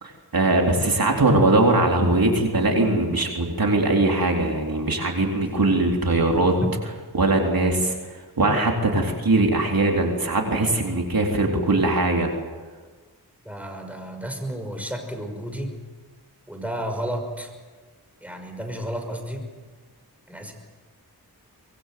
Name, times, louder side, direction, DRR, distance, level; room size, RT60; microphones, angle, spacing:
voice 1, 0.0-6.6 7.1-12.3, right 2 dB, 60° right, 1 dB, 4.0 m, -21 dB
voice 2, 5.2-5.5 6.6-6.7 13.4-15.7 16.5-17.5 18.2-19.5 20.3-20.5, equal, 5° right, 4 dB, 5.8 m, -32 dB
24.5 x 21.5 x 7.8 m, 1.4 s
cardioid pair, 55°, 39 cm